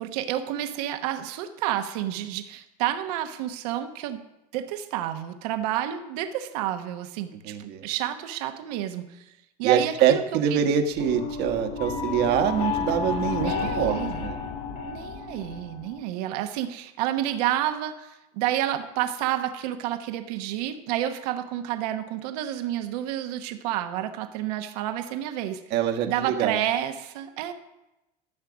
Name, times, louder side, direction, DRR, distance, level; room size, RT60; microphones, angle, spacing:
voice 1, 0.0-4.2 4.5-9.3 9.6-10.2 10.5-10.7 13.4-14.2 14.8-25.6 26.1-27.5, right 12 dB, 75° right, 8 dB, 1.1 m, -30 dB
voice 2, 7.4-7.8 9.6-13.5 13.8-14.3 25.7-26.6, right 8 dB, 55° right, 6 dB, 1.3 m, -24 dB
sound 1, 10.9-16.0, left 5 dB, 65° left, 4.1 m, -31 dB
13.0 x 6.5 x 6.2 m, 0.95 s
supercardioid pair, 115°, 20 cm